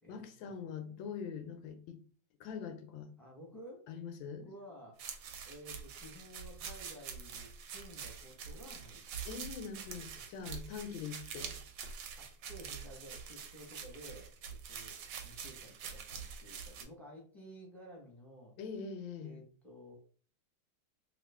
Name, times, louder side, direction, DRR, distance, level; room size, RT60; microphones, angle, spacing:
voice 1, 0.1-2.0 2.4-3.1 3.9-4.5 9.2-11.5 18.6-19.3, left 6 dB, 90° left, 1.3 m, -43 dB
voice 2, 3.2-3.9 4.2-5.0 5.4-9.0 10.1-10.5 12.2-18.5 19.2-20.0, equal, ahead, 0.5 m, -53 dB
sound 1, 5.0-16.8, right 6 dB, 75° right, 1.1 m, -46 dB
3.1 x 2.3 x 3.4 m
omnidirectional pair, 2.0 m